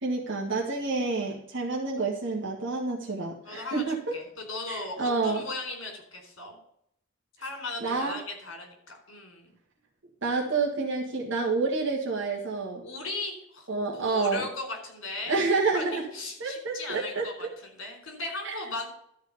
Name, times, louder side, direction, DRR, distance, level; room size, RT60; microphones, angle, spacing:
voice 1, 0.0-4.0 4.7-5.4 7.8-8.2 10.2-12.8 13.7-14.5 15.3-16.0 16.4-17.3 18.4-18.5, right 3 dB, 65° right, -2 dB, 1.8 m, -28 dB
voice 2, 3.4-6.5 7.4-9.5 12.8-15.4 15.7-18.9, left 2 dB, 70° left, 3 dB, 4.2 m, -37 dB
12.5 x 4.8 x 8.1 m, 0.73 s
head